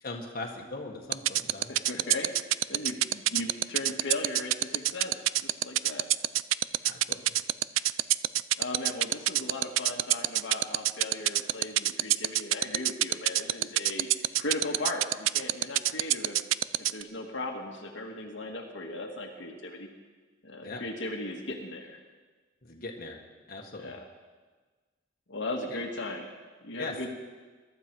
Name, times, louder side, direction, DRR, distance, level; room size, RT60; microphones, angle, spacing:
voice 1, 0.0-2.0 6.8-7.2 20.6-20.8 22.6-23.2 23.5-23.9 26.8-26.9, left 3 dB, 50° left, 0 dB, 1.7 m, -40 dB
sound 1, 1.1-17.0, right 15 dB, 80° right, 0.4 m, -24 dB
voice 2, 1.7-6.1 7.7-7.8 8.6-14.1 14.4-16.4 16.9-19.9 20.4-22.0 23.8-24.0 25.3-26.2 26.6-27.1, left 2 dB, 65° left, 1 dB, 1.7 m, -37 dB
22.0 x 12.0 x 4.7 m, 1.4 s
head